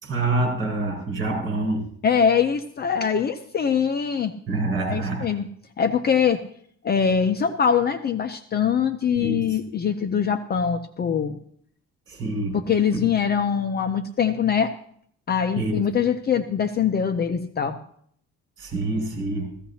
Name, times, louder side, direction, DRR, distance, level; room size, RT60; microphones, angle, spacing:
voice 1, 0.0-1.9 4.5-5.3 9.1-9.6 12.1-12.6 15.5-15.8 18.6-19.6, right 2 dB, 40° right, 1 dB, 5.8 m, -26 dB
voice 2, 2.0-4.3 4.9-5.5 5.8-6.4 6.8-11.4 12.5-14.7 15.3-17.8, left 7 dB, 35° left, 8 dB, 0.6 m, -23 dB
16.0 x 15.0 x 2.8 m, 0.62 s
cardioid pair, 165°, 29 cm